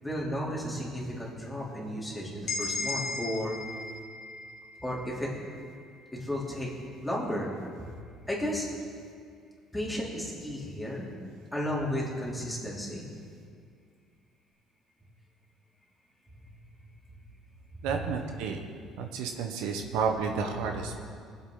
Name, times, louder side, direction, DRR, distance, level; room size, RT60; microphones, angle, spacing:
voice 1, 0.0-3.6 4.8-5.3 6.1-6.7 7.0-7.9 8.3-8.7 9.7-11.1 11.5-13.1 17.7-17.8 18.9-19.0, equal, 5° left, -5 dB, 3.3 m, -33 dB
sound 1, 2.5-6.3, left 3 dB, 55° left, 1.8 m, -37 dB
voice 2, 17.8-18.6 19.0-21.0, right 5 dB, 85° right, 4 dB, 1.1 m, -31 dB
20.0 x 8.0 x 4.0 m, 2.2 s
cardioid pair, 105°, 0 cm